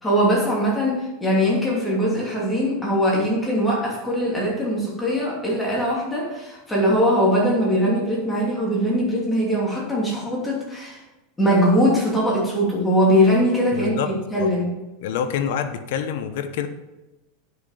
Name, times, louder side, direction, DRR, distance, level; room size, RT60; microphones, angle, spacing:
voice 1, 0.0-11.0 11.4-14.7, equal, 10° left, -4 dB, 2.7 m, -21 dB
voice 2, 13.7-14.1 14.4-14.5 15.0-16.7, left 8 dB, 65° left, 9 dB, 0.9 m, -26 dB
10.5 x 6.4 x 4.9 m, 1.0 s
supercardioid pair, 150°, 0 cm